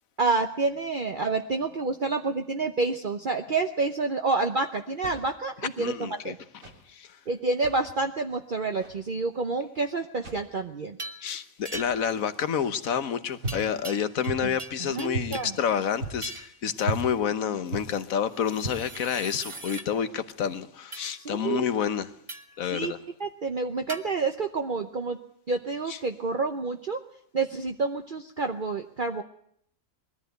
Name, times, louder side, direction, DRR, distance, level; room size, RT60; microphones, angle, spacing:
voice 1, 0.2-6.4 7.3-11.0 14.4-14.5 14.8-15.5 21.2-21.6 22.7-22.9 23.2-25.2 25.5-27.0 27.3-29.2, right 3 dB, 45° right, 1.0 m, -28 dB
sound 1, 4.9-5.5 6.4-6.8 7.4-7.9 8.7-9.0 10.1-10.5 11.6-12.0 13.4-13.7 14.2-14.6 15.1-15.4 16.0-16.4 16.8-17.1 17.7-17.9 18.5-19.0, right 3 dB, 85° right, 3.6 m, -35 dB
voice 2, 5.8-6.3 6.9-7.2 11.2-22.1 22.6-23.0 25.9-26.0, left 8 dB, 85° left, 1.5 m, -29 dB
Hollow Metal Pipe Hits, 11.0-11.3 11.6-12.1 13.5-14.3 14.6-15.6 16.2-16.6 18.3-19.9 20.9-21.1 22.3-22.6 23.9-24.0, right 2 dB, 25° right, 1.2 m, -40 dB
21.0 x 13.5 x 9.3 m
omnidirectional pair, 1.4 m